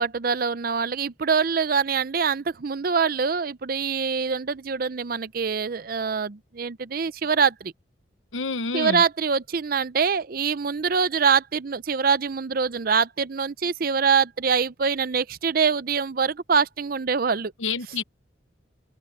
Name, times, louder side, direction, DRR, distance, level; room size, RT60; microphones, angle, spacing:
voice 1, 0.0-7.7 8.7-17.5, right 5 dB, 45° right, 0.5 m, -24 dB
voice 2, 8.3-9.0 17.6-18.0, left 4 dB, 80° left, 1.0 m, -28 dB
open air
head